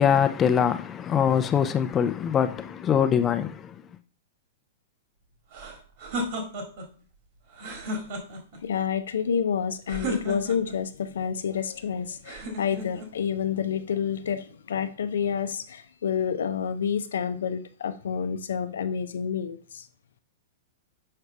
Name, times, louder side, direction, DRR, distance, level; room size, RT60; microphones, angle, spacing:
voice 1, 0.0-3.7, left 8 dB, 25° left, 0.6 m, -23 dB
sound 1, 5.5-6.9 7.5-8.6 9.9-10.8 12.2-13.1, equal, 55° right, 2.0 m, -34 dB
voice 2, 8.6-19.9, left 7 dB, 75° left, 0.6 m, -29 dB
6.7 x 4.7 x 3.3 m
hypercardioid pair, 115°, 0 cm